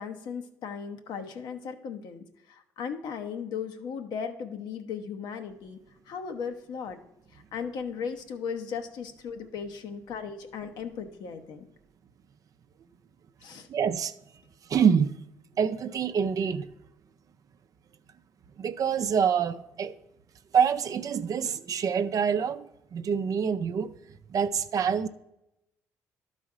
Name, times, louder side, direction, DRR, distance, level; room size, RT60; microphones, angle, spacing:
voice 1, 0.0-5.8 6.1-7.0 7.3-11.7 13.4-13.7, left 6 dB, 65° left, 0.9 m, -37 dB
voice 2, 13.7-14.1 14.7-15.1 15.6-16.7 18.6-20.0 20.5-22.7 22.9-23.9 24.3-25.1, right 7 dB, 50° right, 0.5 m, -26 dB
12.0 x 4.1 x 4.8 m
hypercardioid pair, 60°, 8 cm